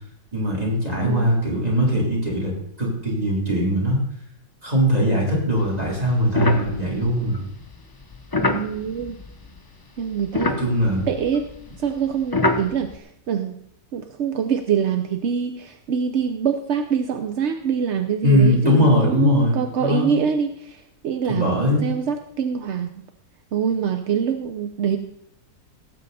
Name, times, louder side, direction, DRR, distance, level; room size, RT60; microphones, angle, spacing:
voice 1, 0.3-4.0 4.6-7.4 10.6-11.1 18.2-20.1 21.3-21.8, equal, 20° right, -3 dB, 3.8 m, -20 dB
voice 2, 1.0-1.4 8.4-9.2 10.0-10.5 11.1-11.4 11.8-13.6 13.9-22.9 23.5-25.0, right 7 dB, 55° right, 7 dB, 0.8 m, -25 dB
sound 1, 5.6-9.8 10.1-13.0, left 2 dB, 30° left, 0.4 m, -27 dB
17.5 x 7.9 x 4.1 m, 0.69 s
omnidirectional pair, 1.9 m